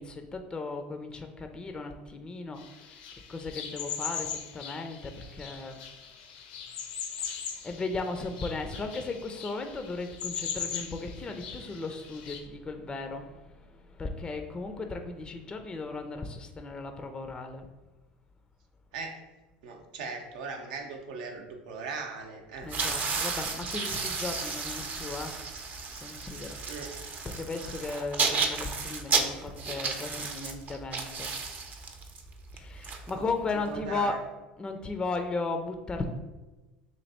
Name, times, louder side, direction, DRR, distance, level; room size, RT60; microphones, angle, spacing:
voice 1, 0.0-5.8 7.2-17.7 22.6-25.3 26.0-26.6 27.2-31.3 32.5-34.2 34.6-36.1, left 3 dB, 20° left, 6 dB, 0.4 m, -36 dB
sound 1, 2.6-12.4, left 7 dB, 80° left, 0.6 m, -40 dB
voice 2, 19.6-22.7 26.7-26.9 33.1-33.3 33.7-34.2, right 4 dB, 75° right, 3 dB, 0.7 m, -39 dB
sound 2, 22.6-33.7, right 4 dB, 40° right, 0.6 m, -33 dB
3.1 x 2.7 x 4.1 m, 1.2 s
hypercardioid pair, 90°, 5 cm